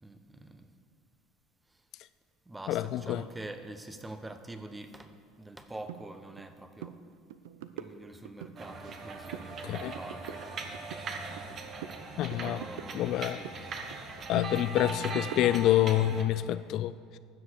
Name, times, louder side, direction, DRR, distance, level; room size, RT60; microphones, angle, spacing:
voice 1, 0.0-0.7 2.5-5.1 5.4-6.9 7.8-10.4 12.3-13.7 14.8-15.6, right 2 dB, 15° right, 8 dB, 1.0 m, -45 dB
voice 2, 2.7-3.2 9.6-9.9 12.2-12.6 12.9-13.4 14.3-17.2, left 13 dB, 60° left, 14 dB, 0.3 m, -27 dB
sound 1, 5.9-6.0 6.4-6.5 6.8-7.0 7.3-8.5 8.9-9.5 9.8-11.5 11.8-13.6 13.9-15.8, right 11 dB, 80° right, 0.6 m, -44 dB
sound 2, 8.6-16.2, right 3 dB, 45° right, 1.4 m, -40 dB
12.5 x 7.6 x 6.5 m, 2.2 s
supercardioid pair, 90°, 0 cm